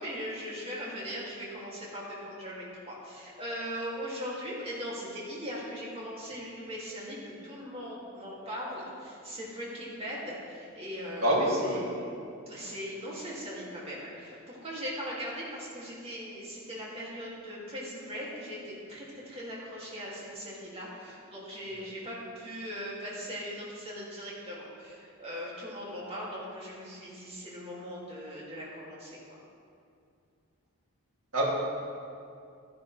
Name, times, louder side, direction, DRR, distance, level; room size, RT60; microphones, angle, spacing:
voice 1, 0.0-12.1 12.5-29.4, equal, 25° right, -6 dB, 2.5 m, -39 dB
voice 2, 11.2-11.8 31.3-31.4, right 1 dB, 85° right, -5 dB, 2.7 m, -25 dB
12.0 x 10.5 x 3.3 m, 2.4 s
head